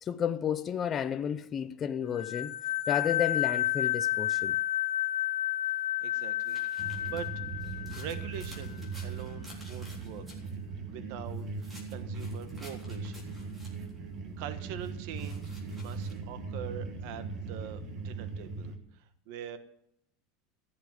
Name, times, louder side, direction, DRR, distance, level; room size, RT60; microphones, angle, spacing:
voice 1, 0.0-2.6 2.9-4.6, left 8 dB, 25° left, 0.6 m, -32 dB
sound 1, 2.1-8.6, left 13 dB, 80° left, 2.3 m, -31 dB
sound 2, 5.7-10.6 11.3-14.0 14.8-16.2, equal, 15° right, 3.6 m, -53 dB
voice 2, 6.0-10.2 10.9-13.3 13.7-13.9 14.4-15.5 15.8-19.6, right 9 dB, 55° right, 1.2 m, -44 dB
sound 3, 6.8-18.8, right 4 dB, 30° right, 1.7 m, -39 dB
15.5 x 7.0 x 9.6 m
supercardioid pair, 165°, 0 cm